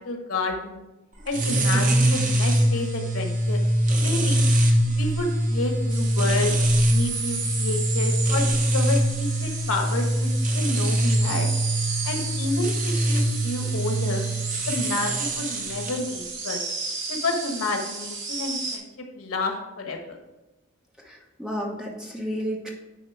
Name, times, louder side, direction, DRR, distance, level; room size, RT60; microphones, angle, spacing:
voice 1, 0.0-0.8 1.2-3.6 4.0-4.4 4.9-6.5 6.9-11.5 12.0-14.3 14.7-16.6 17.1-18.8 19.2-20.2, left 2 dB, 85° left, 3 dB, 1.3 m, -30 dB
sound 1, 1.3-16.0, right 1 dB, 40° right, 1.0 m, -23 dB
voice 2, 1.7-2.0 21.0-22.7, equal, 5° right, -1 dB, 1.0 m, -32 dB
sound 2, 5.9-18.8, right 4 dB, 55° right, 1.8 m, -33 dB
10.0 x 4.3 x 4.6 m, 1.0 s
head